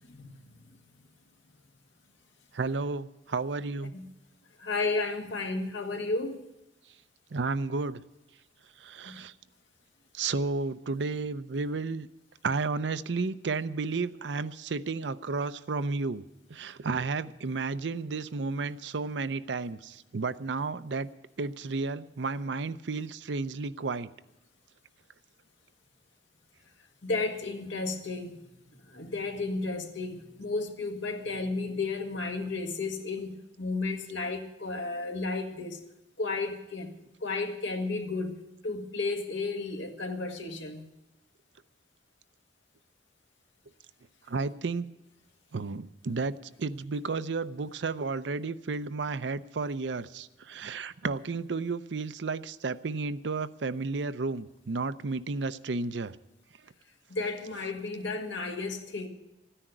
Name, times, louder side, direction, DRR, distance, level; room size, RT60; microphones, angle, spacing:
voice 1, 2.5-3.9 7.3-8.0 8.8-9.3 10.1-12.1 12.4-16.2 16.5-21.1 21.4-24.1 44.3-44.9 45.5-56.1, right 4 dB, 75° right, 0.6 m, -32 dB
voice 2, 4.6-6.4 9.1-9.2 27.0-28.3 28.9-35.8 36.2-36.9 37.2-38.4 38.6-40.9 57.1-59.1, left 3 dB, 90° left, 1.8 m, -33 dB
14.0 x 10.0 x 9.0 m
head